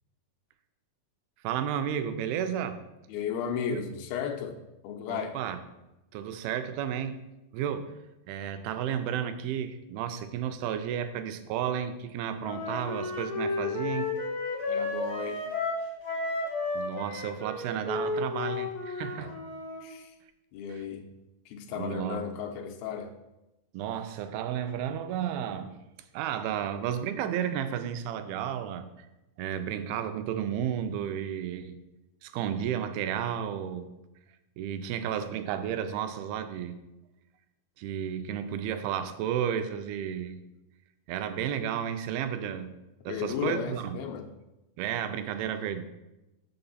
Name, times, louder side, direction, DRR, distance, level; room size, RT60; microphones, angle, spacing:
voice 1, 1.4-2.8 3.7-3.8 5.1-5.6 6.1-7.2 7.5-7.9 8.3-14.1 16.7-19.3 20.7-20.8 21.8-22.2 23.7-25.8 26.1-29.1 29.4-31.8 32.2-33.9 34.6-36.8 37.8-40.4 41.1-42.8 43.1-44.0 44.8-45.8, right 9 dB, 90° right, 9 dB, 2.5 m, -32 dB
voice 2, 3.1-4.6 4.8-5.4 14.7-15.4 19.2-19.3 19.8-20.2 20.5-21.1 21.5-23.1 43.1-44.3, left 7 dB, 90° left, 4 dB, 2.5 m, -34 dB
Wind instrument woodwind instrument, 12.4-19.8, left 3 dB, 55° left, 0.7 m, -32 dB
6.8 x 6.0 x 4.1 m, 0.97 s
omnidirectional pair, 4.3 m